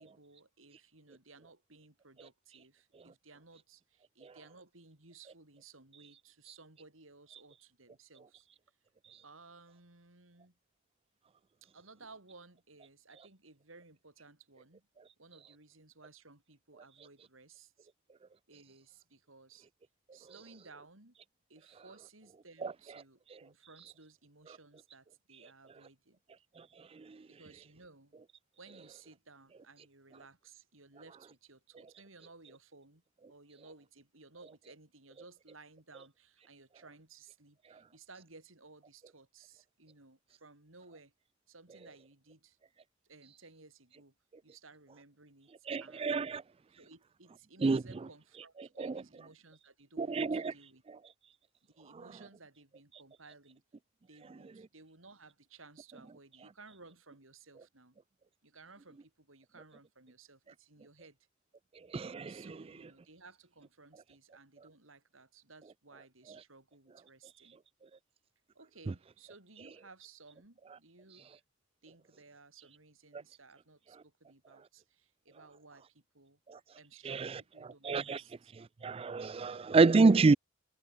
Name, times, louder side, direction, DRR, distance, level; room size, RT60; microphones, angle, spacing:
voice 1, 0.0-8.5 9.2-10.6 11.7-14.9 15.2-17.9 18.5-19.7 20.1-21.2 21.5-26.2 27.3-28.2 28.6-33.0 33.3-41.1 41.5-42.6 43.0-44.1 44.4-46.2 46.8-50.8 51.6-53.6 54.0-58.0 58.4-61.2 62.3-67.6 68.5-71.3 71.8-76.4 76.8-78.5, right 3 dB, 90° right, 5.0 m, -58 dB
voice 2, 45.7-46.4 47.6-47.8 48.8-48.9 50.0-50.5 61.9-62.4 76.5-76.6 77.0-77.4 77.8-78.2 78.8-80.3, right 4 dB, 30° right, 0.4 m, -27 dB
head